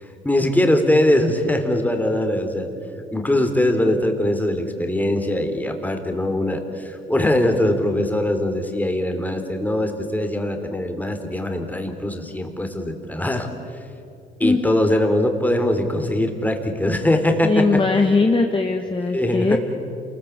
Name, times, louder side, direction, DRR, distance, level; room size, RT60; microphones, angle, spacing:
voice 1, 0.0-2.7 3.1-13.5 14.4-17.8 19.1-19.6, left 1 dB, 10° left, 5 dB, 3.5 m, -21 dB
voice 2, 17.4-19.6, left 3 dB, 25° left, 3 dB, 1.8 m, -19 dB
28.0 x 21.0 x 8.5 m, 2.7 s
cardioid pair, 90°, 20 cm